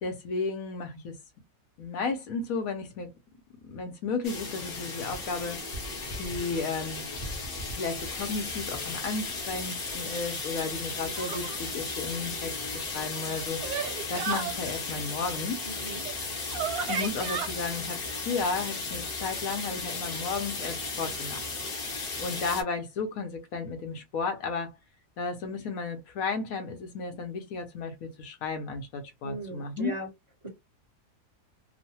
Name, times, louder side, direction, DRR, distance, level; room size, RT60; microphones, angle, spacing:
voice 1, 0.0-1.2 1.8-3.1 3.6-5.6 6.2-7.1 7.7-15.6 16.9-21.5 22.2-24.8 25.2-29.9, left 4 dB, 70° left, 1.0 m, -33 dB
sound 1, 4.2-22.6, left 3 dB, 45° left, 0.8 m, -35 dB
sound 2, 11.2-11.6 13.0-14.5 16.0-16.1 16.5-17.5, right 7 dB, 70° right, 1.1 m, -33 dB
voice 2, 15.7-16.0 29.2-30.1 30.4-30.5, right 2 dB, 20° right, 1.0 m, -38 dB
3.0 x 2.1 x 2.8 m
omnidirectional pair, 1.7 m